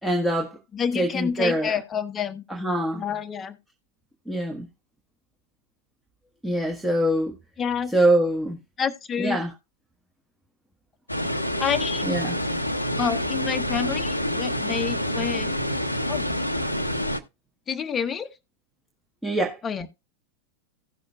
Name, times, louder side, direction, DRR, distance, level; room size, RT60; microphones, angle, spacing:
voice 1, 0.0-0.6 0.9-1.7 2.5-3.0 4.3-4.7 6.4-7.3 7.9-8.6 9.2-9.5 12.0-12.4 19.2-19.6, right 1 dB, 5° right, 1.3 m, -24 dB
voice 2, 0.7-2.4 2.9-3.6 7.6-7.9 8.8-9.4 11.6-12.1 13.0-15.5 16.1-16.3 17.7-18.3 19.6-19.9, left 7 dB, 25° left, 0.9 m, -28 dB
sound 1, 11.1-17.2, equal, 85° left, 0.8 m, -27 dB
16.5 x 6.4 x 2.4 m
figure-of-eight pair, 90°, 0 cm